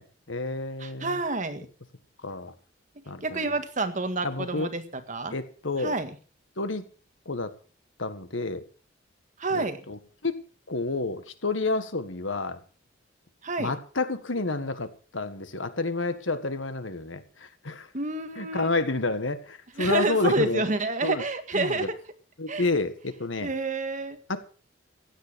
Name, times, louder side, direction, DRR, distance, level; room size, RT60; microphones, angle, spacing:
voice 1, 0.0-1.2 2.2-2.5 3.1-3.5 4.2-4.7 5.3-6.0 6.6-6.9 7.3-7.6 8.0-8.6 9.5-10.4 10.7-12.6 13.6-17.9 18.4-20.6 21.0-21.2 21.5-21.9 22.4-23.5 24.3-24.4, left 3 dB, 80° left, 11 dB, 1.7 m, -30 dB
voice 2, 0.8-1.7 3.2-4.8 5.1-5.4 5.8-6.1 9.4-9.8 13.4-13.7 17.9-18.7 19.8-22.0 22.5-22.7 23.4-24.2, right 3 dB, 40° right, 9 dB, 1.8 m, -28 dB
15.5 x 10.0 x 6.3 m, 0.39 s
head